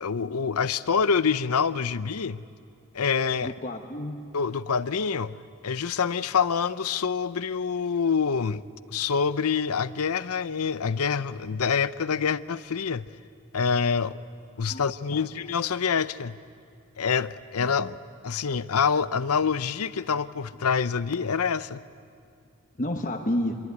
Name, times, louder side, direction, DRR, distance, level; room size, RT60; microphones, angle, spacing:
voice 1, 0.0-2.4 2.9-3.5 4.3-5.4 5.6-8.6 8.9-13.1 13.5-14.2 14.6-16.4 17.0-18.0 18.2-21.8, left 6 dB, 90° left, 0.7 m, -26 dB
voice 2, 3.4-4.2 14.7-14.8 15.1-15.3 22.8-23.6, left 1 dB, 35° left, 1.1 m, -30 dB
26.5 x 22.5 x 9.6 m
head